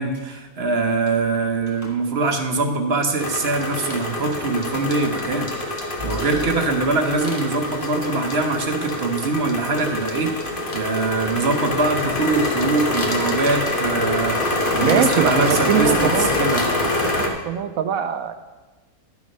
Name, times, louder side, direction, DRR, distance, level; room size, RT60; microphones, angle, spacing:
voice 1, 0.0-10.3 10.7-14.4 14.7-16.6, right 3 dB, 50° right, 5 dB, 1.0 m, -23 dB
sound 1, 0.8-2.9 3.3-3.9 4.2-4.3 4.7-5.1 5.7-7.1 10.2-12.0 12.6-12.8 14.5-16.8, left 1 dB, 10° left, 1.8 m, -42 dB
sound 2, 3.2-17.3, left 2 dB, 40° left, 1.4 m, -25 dB
voice 2, 14.8-16.3 17.3-18.3, right 8 dB, 75° right, 9 dB, 1.0 m, -22 dB
11.5 x 6.3 x 5.4 m, 1.2 s
omnidirectional pair, 1.5 m